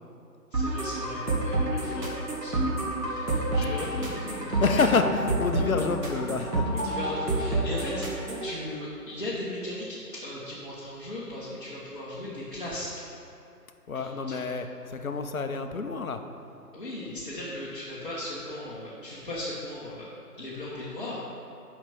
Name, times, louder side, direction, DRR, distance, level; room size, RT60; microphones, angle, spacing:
voice 1, 0.5-2.7 3.0-4.8 6.7-8.0 8.4-9.9 10.1-12.9 13.9-14.4 16.7-20.1 20.4-21.2, left 1 dB, 35° left, -9 dB, 1.1 m, -37 dB
sound 1, 0.5-8.5, right 2 dB, 70° right, 2.0 m, -29 dB
voice 2, 4.6-6.7 13.9-16.2, left 4 dB, 60° left, 7 dB, 0.7 m, -28 dB
5.8 x 5.5 x 6.8 m, 2.6 s
figure-of-eight pair, 150°, 48 cm